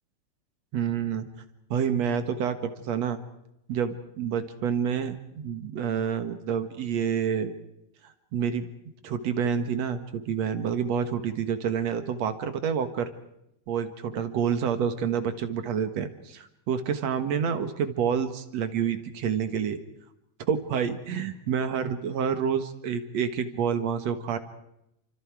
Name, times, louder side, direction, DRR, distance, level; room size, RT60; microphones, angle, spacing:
voice 1, 0.7-1.3 1.7-3.2 3.7-7.5 8.3-8.7 9.0-13.1 13.7-19.8 20.5-24.4, right 7 dB, 55° right, 9 dB, 2.0 m, -28 dB
30.0 x 25.5 x 4.8 m, 0.81 s
omnidirectional pair, 4.5 m